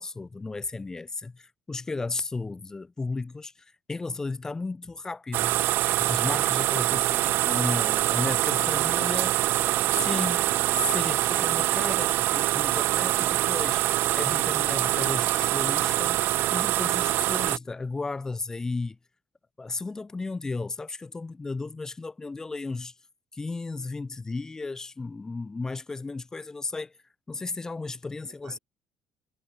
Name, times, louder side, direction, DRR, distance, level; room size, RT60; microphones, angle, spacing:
voice 1, 0.0-5.6 6.0-9.3 10.0-10.5 10.7-19.0 19.6-22.9 23.3-26.9 27.3-28.6, left 3 dB, 15° left, 3.0 m, -34 dB
sound 1, 5.3-17.6, right 16 dB, 65° right, 1.6 m, -24 dB
voice 2, 7.2-10.2 28.4-28.6, right 11 dB, 50° right, 4.4 m, -47 dB
cardioid pair, 145°, 4 cm